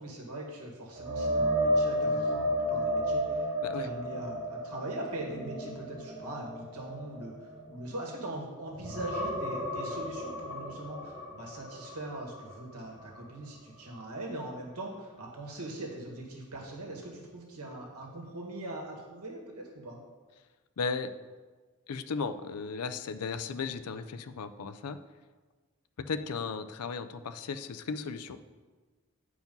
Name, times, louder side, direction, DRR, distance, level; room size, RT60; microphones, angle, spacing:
voice 1, 0.0-3.5 3.7-20.0, right 1 dB, 90° right, -1 dB, 1.8 m, -41 dB
sound 1, 1.0-8.4 8.7-12.6 13.0-13.2 16.5-16.6, equal, 20° right, 2.0 m, -32 dB
voice 2, 20.8-21.1 21.9-25.0 26.1-28.4, left 5 dB, 85° left, 11 dB, 0.5 m, -35 dB
9.3 x 4.8 x 5.4 m, 1.4 s
head